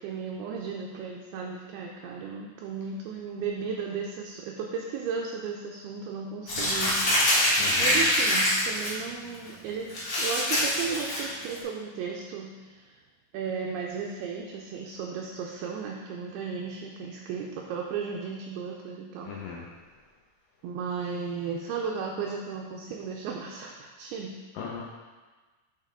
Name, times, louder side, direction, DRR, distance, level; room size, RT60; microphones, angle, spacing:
voice 1, 0.0-7.2 7.5-9.9 10.2-13.0 13.3-19.3 20.6-24.4, right 6 dB, 80° right, 0 dB, 2.4 m, -35 dB
Crumpling crinkling, 6.5-8.9 9.3-9.5 9.9-11.6, left 1 dB, 55° left, 1.2 m, -24 dB
voice 2, 7.6-8.0 19.2-19.6 24.5-24.8, left 6 dB, 80° left, -4 dB, 2.0 m, -38 dB
6.6 x 5.3 x 3.7 m, 1.3 s
omnidirectional pair, 4.7 m